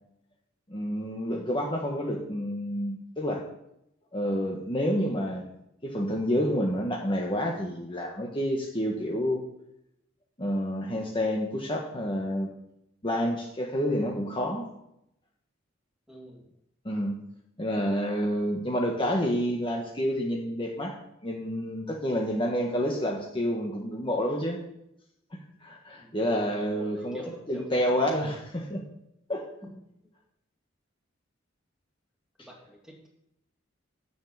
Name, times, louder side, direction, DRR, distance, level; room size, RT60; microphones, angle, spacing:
voice 1, 0.7-3.4 4.1-5.5 5.8-9.4 10.4-12.5 13.0-14.7 16.8-17.2 17.6-21.0 21.2-24.6 25.3-27.2 27.5-28.8 29.3-29.4, equal, 25° left, -1 dB, 1.4 m, -29 dB
voice 2, 16.1-16.5 26.0-26.1 26.4-28.1 29.6-29.7 32.4-33.1, equal, 5° right, -1 dB, 2.7 m, -47 dB
10.0 x 7.1 x 7.4 m, 0.80 s
head